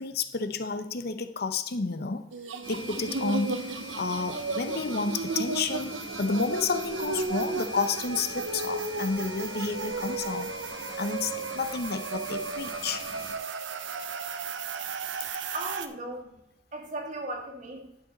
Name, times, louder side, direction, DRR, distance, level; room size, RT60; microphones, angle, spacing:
voice 1, 0.0-2.2 2.7-3.6 4.0-10.5 11.0-13.0, left 4 dB, 55° left, 10 dB, 0.7 m, -30 dB
sound 1, 2.3-15.9, right 4 dB, 80° right, 0.7 m, -34 dB
sound 2, 2.6-13.3, equal, 25° left, 1.9 m, -43 dB
voice 2, 15.5-16.4 16.7-17.9, right 1 dB, 40° right, 1 dB, 1.8 m, -37 dB
11.0 x 6.5 x 4.0 m, 0.89 s
head